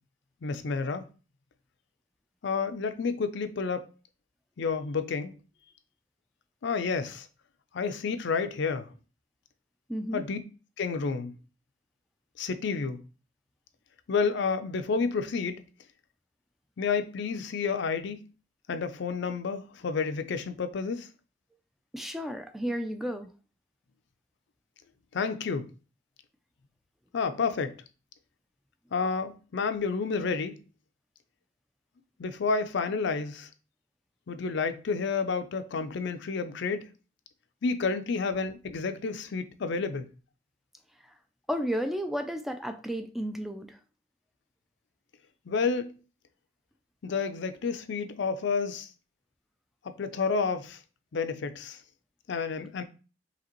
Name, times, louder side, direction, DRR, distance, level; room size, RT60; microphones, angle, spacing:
voice 1, 0.4-1.0 2.4-3.9 4.6-5.3 6.6-7.3 7.7-8.9 10.1-10.4 10.8-11.3 12.4-13.0 14.1-15.6 16.8-18.2 18.7-21.1 25.1-25.7 27.1-27.7 28.9-30.5 32.2-33.5 34.3-36.8 37.6-40.1 45.5-45.9 47.0-48.9 49.8-50.8 51.1-51.8 52.3-52.8, left 5 dB, 65° left, 0.5 m, -30 dB
voice 2, 9.9-10.2 21.9-23.3 41.0-41.1 41.5-43.8, equal, ahead, 0.3 m, -33 dB
5.0 x 2.9 x 3.0 m
head